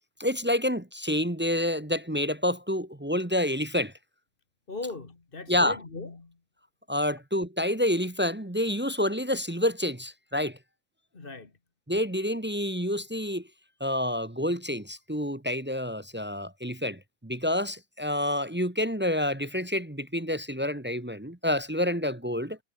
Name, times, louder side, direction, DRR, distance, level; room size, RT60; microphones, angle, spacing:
voice 1, 0.2-3.9 5.5-5.8 6.9-10.6 11.9-13.5 13.8-22.6, left 1 dB, 10° right, 0.6 m, -28 dB
voice 2, 4.7-6.4 11.1-11.5, left 3 dB, 30° left, 2.1 m, -39 dB
omnidirectional pair, 2.1 m